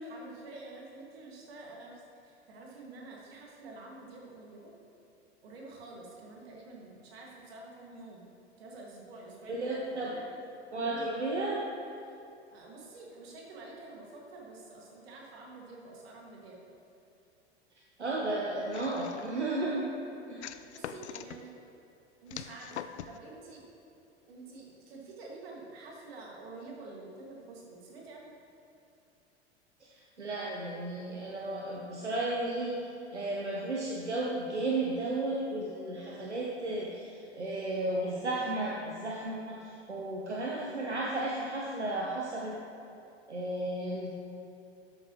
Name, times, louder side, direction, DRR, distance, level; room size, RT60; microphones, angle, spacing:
voice 1, 0.0-4.7 5.4-8.3 8.6-10.3 10.8-11.1 12.0-12.2 12.5-16.6 20.7-21.5 22.2-23.7 24.3-28.3, right 2 dB, 65° right, -2 dB, 2.1 m, -48 dB
voice 2, 9.5-10.1 10.7-11.6 18.0-19.9 20.3-20.4 29.8-42.6 43.3-44.1, right 2 dB, 85° right, -3 dB, 1.0 m, -34 dB
sound 1, 18.7-19.5 20.4-21.4 22.3-23.2, left 9 dB, 75° left, 0.5 m, -43 dB
12.0 x 8.0 x 3.1 m, 2.8 s
figure-of-eight pair, 80°, 33 cm